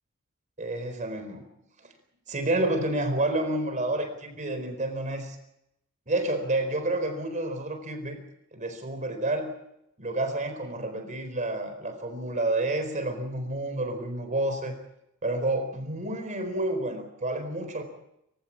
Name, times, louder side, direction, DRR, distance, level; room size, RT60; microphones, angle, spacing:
voice 1, 0.6-1.5 2.3-5.4 6.1-8.2 8.5-9.5 10.0-14.7 15.2-17.8, right 2 dB, 35° right, 6 dB, 4.3 m, -29 dB
24.5 x 16.5 x 8.5 m, 0.81 s
head